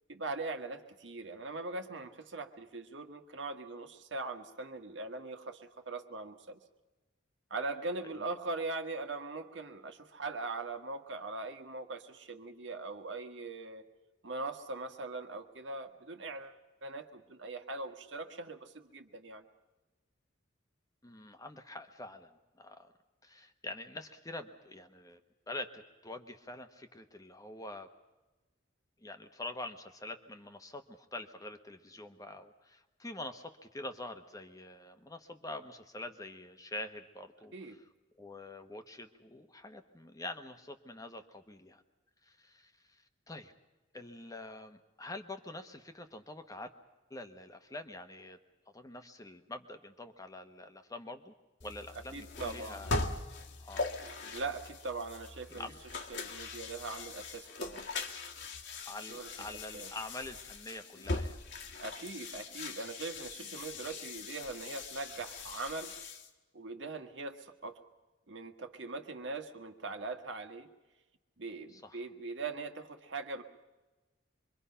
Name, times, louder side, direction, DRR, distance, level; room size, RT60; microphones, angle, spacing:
voice 1, 0.1-6.6 7.5-13.8 14.2-19.4 37.5-37.8 52.1-52.9 54.3-55.7 56.1-57.8 59.1-59.3 59.7-59.9 61.8-65.9 66.5-67.8 68.3-70.7 71.4-73.4, right 3 dB, 65° right, 6 dB, 1.6 m, -41 dB
voice 2, 21.0-22.9 23.2-25.2 25.5-27.9 29.0-37.8 38.2-41.8 42.2-43.5 43.9-46.7 47.1-48.4 48.7-51.3 51.6-52.9 53.6-53.9 55.5-55.8 58.9-61.4 71.7-72.0, left 2 dB, 20° left, 7 dB, 1.1 m, -45 dB
sound 1, 51.6-66.3, left 3 dB, 65° left, 1.7 m, -41 dB
25.5 x 23.5 x 5.7 m, 1.1 s
head